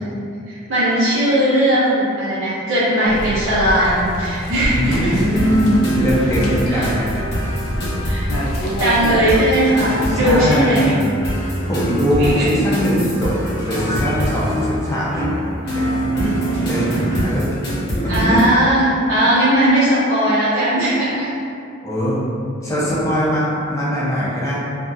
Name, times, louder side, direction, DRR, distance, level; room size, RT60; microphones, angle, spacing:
voice 1, 0.5-5.1 6.7-6.9 8.0-8.2 8.8-11.0 12.2-12.6 18.1-21.3, right 1 dB, 65° right, -11 dB, 0.5 m, -18 dB
sound 1, 3.0-9.4, equal, 80° left, 0.4 m, -26 dB
voice 2, 4.7-7.3 7.7-7.9 9.2-9.4 10.0-10.9 11.3-13.3 13.6-17.6 17.9-18.5 21.8-22.2 22.6-24.6, equal, 15° left, -8 dB, 0.5 m, -21 dB
sound 2, 5.3-18.5, right 1 dB, 55° left, 0.8 m, -24 dB
2.6 x 2.3 x 2.2 m, 2.4 s
head